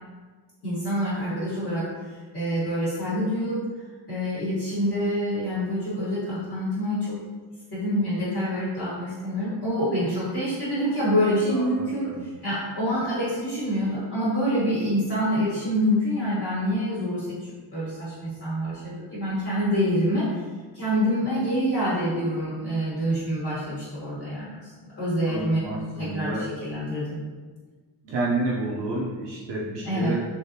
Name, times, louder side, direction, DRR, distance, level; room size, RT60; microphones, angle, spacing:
voice 1, 0.6-3.6 4.1-7.1 7.7-12.1 12.4-17.3 17.7-18.8 19.1-20.3 20.7-24.7 25.0-25.6 26.0-27.2 29.8-30.1, equal, 30° left, -11 dB, 1.1 m, -26 dB
voice 2, 11.5-12.2 25.2-26.5 28.0-30.2, right 2 dB, 90° right, -5 dB, 0.7 m, -30 dB
3.3 x 2.6 x 2.8 m, 1.4 s
wide cardioid pair, 160°, 42 cm